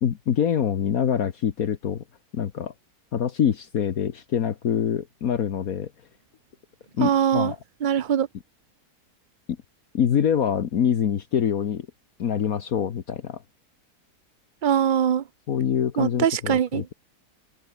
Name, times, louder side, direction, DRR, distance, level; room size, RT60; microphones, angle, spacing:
voice 1, 0.0-2.0 2.3-2.7 3.1-5.9 7.0-7.6 9.9-11.9 12.2-13.4 15.5-16.9, left 8 dB, 65° left, 1.6 m, -25 dB
voice 2, 7.0-7.5 7.8-8.3 14.6-15.2 16.0-16.8, right 9 dB, 65° right, 0.4 m, -22 dB
omnidirectional pair, 1.7 m